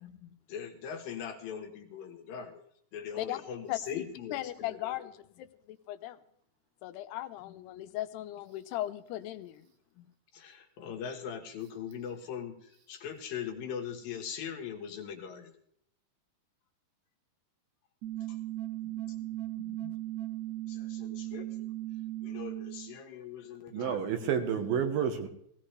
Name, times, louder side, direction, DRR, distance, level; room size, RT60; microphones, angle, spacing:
voice 1, 0.0-2.6 2.9-5.0 7.4-7.5 10.0-10.1 10.3-15.6 18.3-18.4 18.8-19.3 19.6-19.9 20.7-21.7 22.2-24.1, left 8 dB, 65° left, 2 dB, 2.9 m, -41 dB
voice 2, 3.7-5.1 5.4-6.2 6.8-9.7, left 15 dB, 85° left, 10 dB, 2.7 m, -38 dB
sound 1, 18.0-23.0, right 15 dB, 55° right, 2.1 m, -37 dB
voice 3, 23.7-25.3, right 7 dB, 70° right, 6 dB, 2.8 m, -30 dB
17.5 x 17.0 x 3.3 m, 0.69 s
omnidirectional pair, 4.7 m